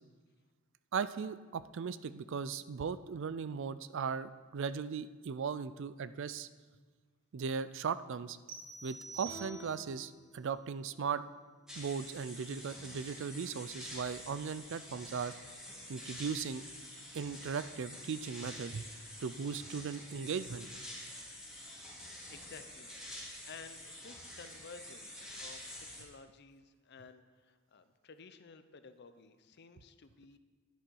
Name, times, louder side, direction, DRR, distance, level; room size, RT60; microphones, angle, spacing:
voice 1, 0.9-6.5 7.3-8.4 8.8-11.2 11.8-15.3 15.9-16.6 17.1-18.9 19.2-20.7, right 6 dB, 60° right, 15 dB, 0.4 m, -38 dB
sound 1, 8.5-10.0, right 6 dB, 40° right, 1.3 m, -47 dB
sound 2, 9.2-12.4, left 1 dB, 90° left, 1.9 m, -54 dB
sound 3, 11.7-26.0, left 1 dB, 5° right, 2.7 m, -48 dB
voice 2, 22.3-22.9 23.5-30.4, left 5 dB, 50° left, 11 dB, 0.6 m, -54 dB
10.5 x 10.5 x 4.6 m, 1.4 s
head